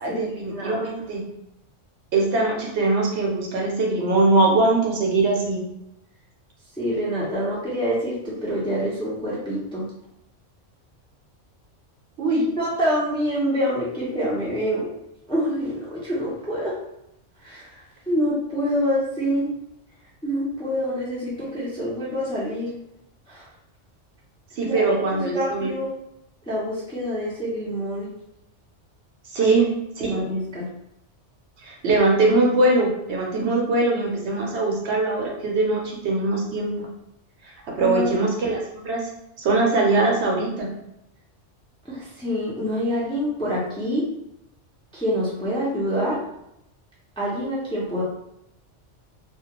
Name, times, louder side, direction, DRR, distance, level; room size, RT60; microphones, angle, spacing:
voice 1, 0.0-1.2 2.1-5.6 12.2-12.4 24.6-25.7 29.3-29.7 30.0-30.2 31.6-36.9 37.8-39.0 39.4-40.7, right 2 dB, 70° right, -1 dB, 0.9 m, -21 dB
voice 2, 6.8-9.9 12.3-14.9 15.3-16.8 17.4-19.5 20.2-22.7 23.3-23.5 24.6-24.8 25.1-25.9 26.5-28.1 29.4-29.5 30.0-30.7 37.8-38.2 41.9-44.1 44.9-46.2 47.2-48.0, equal, 5° left, -7 dB, 0.4 m, -26 dB
2.3 x 2.2 x 2.9 m, 0.84 s
omnidirectional pair, 1.3 m